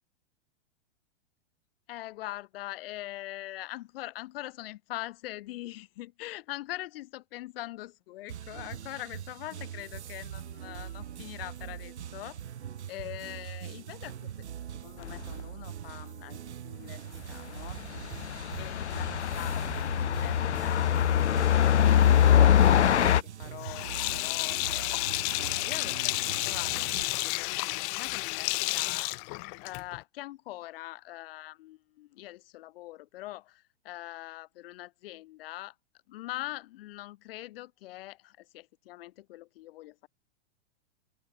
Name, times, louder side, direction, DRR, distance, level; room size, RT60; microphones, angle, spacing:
voice 1, 1.9-12.4 12.9-14.4 14.8-17.8 18.6-19.1 19.4-21.4 21.7-29.1 29.6-35.7 36.1-40.1, left 17 dB, 55° left, 5.1 m, -43 dB
sound 1, 8.3-27.0, right 9 dB, 80° right, 1.8 m, -42 dB
sound 2, 15.0-15.2 17.7-23.2, left 9 dB, 85° left, 1.1 m, -23 dB
Sink (filling or washing), 23.6-30.0, left 40 dB or more, 35° left, 0.7 m, -31 dB
open air
hypercardioid pair, 115°, 33 cm